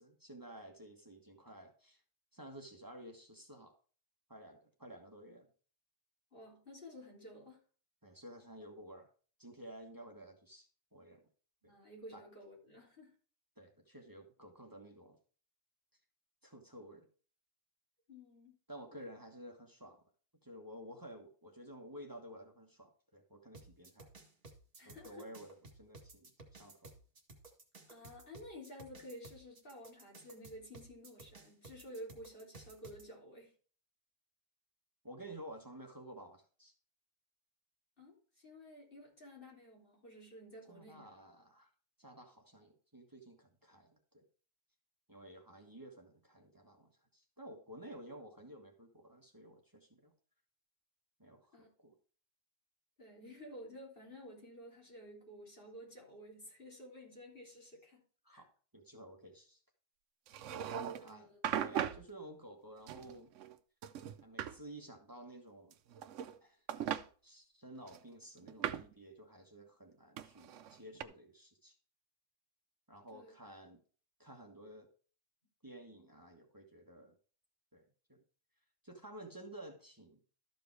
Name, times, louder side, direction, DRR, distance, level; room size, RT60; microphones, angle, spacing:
voice 1, 0.0-2.0 2.3-3.7 4.3-5.5 8.0-9.1 9.4-11.2 11.6-11.7 12.1-12.2 13.6-15.2 16.4-17.1 18.7-20.0 20.4-24.1 24.8-27.0 35.0-36.7 40.7-41.7 42.0-44.2 45.1-50.1 51.2-52.0 58.2-59.6 61.0-61.3 61.6-63.3 64.2-65.8 66.4-66.6 67.2-71.8 72.9-73.8 74.2-74.9 75.6-77.1 77.7-78.2 78.8-80.2, right 1 dB, 15° right, 2 dB, 1.4 m, -53 dB
voice 2, 6.3-7.6 11.6-13.1 18.1-18.6 18.9-19.1 24.8-25.2 27.9-33.5 38.0-41.1 51.5-51.7 53.0-58.0 58.3-58.4 60.7-61.4 73.1-73.3, equal, 45° left, -2 dB, 3.8 m, -52 dB
sound 1, 23.5-33.0, right 2 dB, 45° right, 2.2 m, -55 dB
sound 2, 60.3-61.1 61.4-62.1 62.9-63.6 63.8-64.6 65.7-66.4 66.7-67.0 67.9-68.9 70.2-71.0, right 10 dB, 70° right, 1.0 m, -39 dB
13.0 x 5.0 x 4.7 m, 0.41 s
omnidirectional pair, 1.3 m